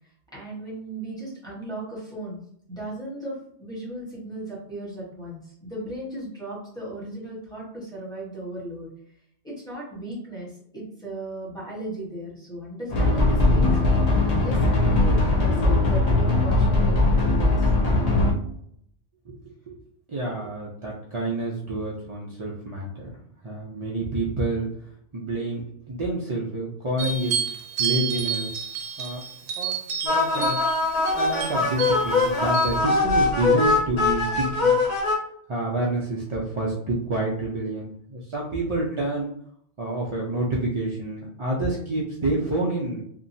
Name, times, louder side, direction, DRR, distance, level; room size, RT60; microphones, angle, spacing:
voice 1, 0.3-2.4 2.7-8.9 9.4-17.7 18.4-18.5, right 1 dB, 5° left, -7 dB, 1.1 m, -36 dB
sound 1, 12.9-18.3, left 2 dB, 55° left, 0.4 m, -20 dB
voice 2, 20.1-23.1 23.4-24.7 25.1-27.4 27.8-28.5 29.0-29.2 29.6-29.8 30.0-30.6 31.1-34.8 35.5-39.3 39.8-43.0, right 2 dB, 55° right, -4 dB, 0.3 m, -28 dB
sound 2, 27.0-32.8, right 7 dB, 75° right, 0.9 m, -30 dB
sound 3, 30.1-35.1, left 3 dB, 70° left, 1.2 m, -22 dB
2.9 x 2.2 x 2.6 m, 0.67 s
omnidirectional pair, 1.2 m